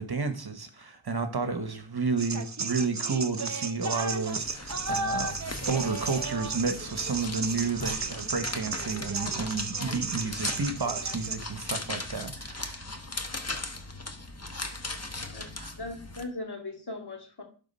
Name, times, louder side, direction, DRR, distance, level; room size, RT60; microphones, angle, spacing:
voice 1, 0.0-5.3 5.7-12.9 14.4-14.8 15.6-15.7, right 4 dB, 50° right, 8 dB, 1.2 m, -31 dB
sound 1, 2.2-11.4, right 4 dB, 35° right, 0.7 m, -34 dB
sound 2, 4.1-16.2, left 2 dB, 30° left, 1.1 m, -38 dB
voice 2, 15.8-17.4, left 2 dB, 55° left, 1 dB, 2.4 m, -39 dB
11.5 x 3.9 x 5.5 m, 0.40 s
wide cardioid pair, 70°, 48 cm